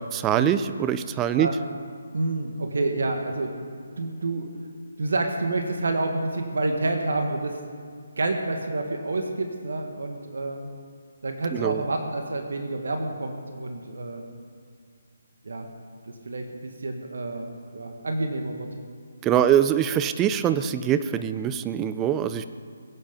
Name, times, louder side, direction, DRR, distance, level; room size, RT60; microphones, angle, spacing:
voice 1, 0.1-1.5 11.5-11.8 19.2-22.4, right 10 dB, 15° right, 12 dB, 0.6 m, -23 dB
voice 2, 2.1-3.7 4.0-4.5 5.0-7.6 8.2-10.6 11.2-14.2 15.4-15.7 16.1-17.5 17.7-18.7, right 2 dB, 65° right, 4 dB, 1.8 m, -28 dB
22.0 x 8.8 x 5.4 m, 2.1 s
figure-of-eight pair, 145°, 0 cm